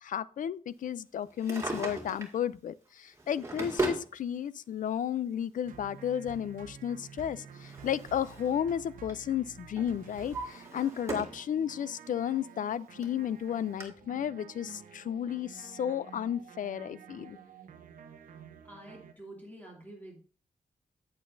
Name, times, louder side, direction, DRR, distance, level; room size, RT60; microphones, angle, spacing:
voice 1, 0.0-17.4, left 9 dB, 70° left, 0.4 m, -33 dB
Drawer open or close, 1.3-2.4 3.1-4.1 5.2-5.3 7.0-8.6 8.9-9.2 9.8-11.4 11.9-12.0 12.7-12.8 13.0-13.1 13.8-13.9, right 2 dB, 20° right, 2.1 m, -37 dB
sound 1, 5.6-19.1, right 7 dB, 80° right, 0.8 m, -50 dB
voice 2, 18.6-20.2, right 1 dB, 10° left, 2.6 m, -48 dB
8.8 x 8.5 x 2.6 m
wide cardioid pair, 100°, 14 cm